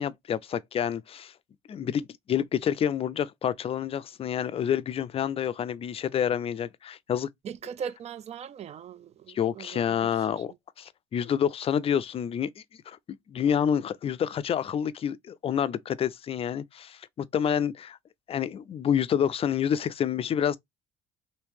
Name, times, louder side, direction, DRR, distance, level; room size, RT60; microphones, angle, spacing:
voice 1, 0.0-1.3 1.7-7.3 9.3-13.0 13.3-18.0 18.3-20.6, left 8 dB, 35° left, 0.4 m, -28 dB
voice 2, 7.4-10.6, right 7 dB, 40° right, 0.4 m, -40 dB
3.0 x 2.7 x 3.4 m
cardioid pair, 110°, 17 cm